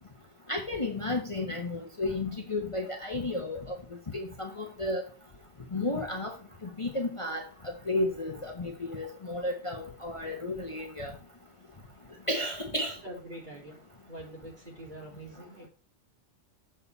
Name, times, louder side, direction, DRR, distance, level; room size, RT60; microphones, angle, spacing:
voice 1, 0.5-3.8 4.1-5.0 5.7-6.3 6.6-11.1 12.3-12.9, left 2 dB, 30° left, 2 dB, 1.0 m, -33 dB
voice 2, 12.7-15.7, right 1 dB, 40° right, -3 dB, 3.6 m, -45 dB
7.2 x 6.5 x 4.0 m, 0.35 s
omnidirectional pair, 1.3 m